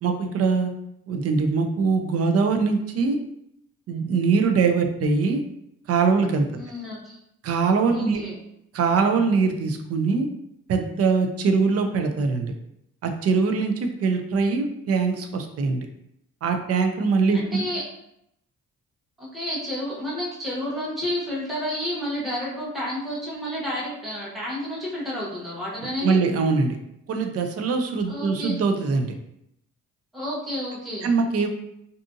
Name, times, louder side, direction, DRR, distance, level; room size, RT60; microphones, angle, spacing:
voice 1, 0.0-0.7 1.1-3.2 3.9-5.4 5.9-6.5 7.4-8.2 8.7-10.3 10.7-12.5 13.0-15.8 16.4-17.6 26.0-26.8 27.1-29.1 31.0-31.5, right 4 dB, 55° right, 5 dB, 0.5 m, -22 dB
voice 2, 6.5-7.2 7.9-8.4 17.3-17.8 19.2-26.2 28.1-28.6 30.1-31.1, left 1 dB, ahead, -7 dB, 0.9 m, -30 dB
2.6 x 2.4 x 2.5 m, 0.78 s
cardioid pair, 90°, 30 cm